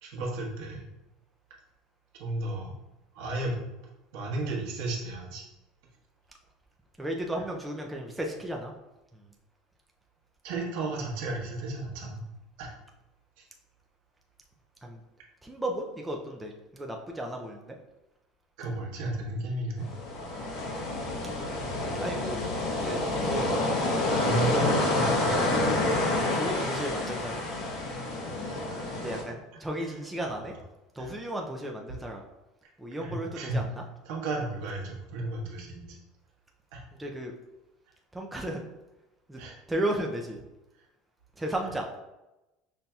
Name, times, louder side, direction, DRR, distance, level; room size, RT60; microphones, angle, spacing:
voice 1, 0.0-0.8 2.2-2.7 3.1-3.6 4.1-5.5 10.4-12.2 12.6-12.7 13.4-13.5 18.6-19.9 24.1-25.5 26.0-26.1 28.4-28.9 29.8-29.9 30.2-30.4 31.0-31.1 33.0-33.6 34.1-36.0 36.7-36.8 39.4-39.6, right 2 dB, 75° right, -2 dB, 1.0 m, -34 dB
voice 2, 7.0-8.7 9.1-9.2 14.8-15.0 15.4-17.7 22.0-23.4 24.2-24.8 26.2-27.4 29.0-30.5 30.9-32.2 32.8-33.6 37.0-37.3 38.1-38.6 39.3-39.4 39.7-40.4 41.4-41.9, right 1 dB, 5° right, 0 dB, 0.4 m, -34 dB
sound 1, 19.8-29.2, left 2 dB, 50° left, 1.0 m, -28 dB
5.5 x 2.6 x 2.3 m, 0.99 s
cardioid pair, 150°, 0 cm